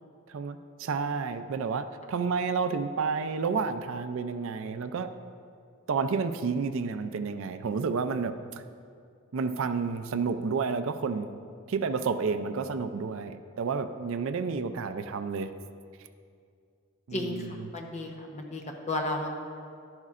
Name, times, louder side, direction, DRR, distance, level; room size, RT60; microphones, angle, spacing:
voice 1, 0.3-5.1 5.9-8.3 9.3-11.3 11.7-15.5 17.1-17.7, right 5 dB, 65° right, 10 dB, 0.4 m, -30 dB
voice 2, 17.1-19.4, left 1 dB, 30° left, 1 dB, 0.9 m, -33 dB
12.0 x 10.5 x 2.5 m, 2.3 s
head